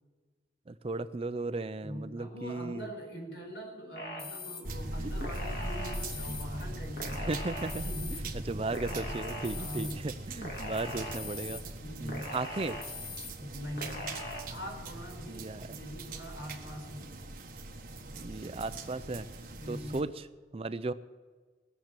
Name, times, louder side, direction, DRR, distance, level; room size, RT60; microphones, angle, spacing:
voice 1, 0.7-2.9 7.2-7.7 8.5-11.6 12.0-12.8 15.3-15.8 18.1-19.3 19.7-20.3 20.5-20.9, right 3 dB, 30° right, 13 dB, 0.5 m, -35 dB
voice 2, 1.8-7.5 7.8-8.3 9.5-10.1 11.8-12.4 13.4-14.2 14.5-17.2 19.6-20.1, equal, 75° left, 1 dB, 4.5 m, -43 dB
sound 1, 4.0-4.6 5.2-6.4 7.0-8.2 8.7-9.9 10.4-11.6 12.1-13.3 13.8-14.4, left 2 dB, 55° left, 2.4 m, -41 dB
sound 2, 4.6-20.0, right 1 dB, 50° right, 1.4 m, -41 dB
19.5 x 7.4 x 9.0 m, 1.4 s
head